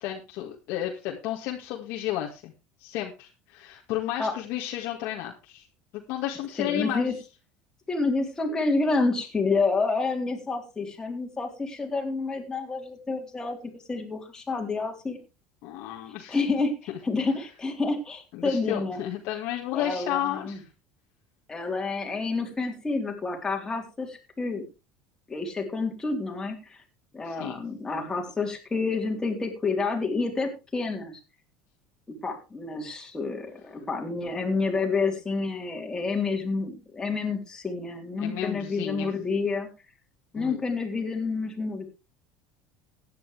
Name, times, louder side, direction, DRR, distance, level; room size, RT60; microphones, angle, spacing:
voice 1, 0.0-2.5 2.8-5.7 5.9-7.1 15.6-16.4 16.9-17.0 18.3-20.6 27.2-27.6 38.2-39.1 40.3-40.6, left 12 dB, 65° left, -1 dB, 1.8 m, -32 dB
voice 2, 6.6-7.1 7.9-15.2 16.3-16.7 17.0-19.0 19.7-20.6 21.5-24.6 25.3-26.8 27.1-31.1 32.2-39.7 40.3-41.8, left 3 dB, 15° left, 1 dB, 3.8 m, -29 dB
16.0 x 10.0 x 3.4 m, 0.28 s
supercardioid pair, 125°, 4 cm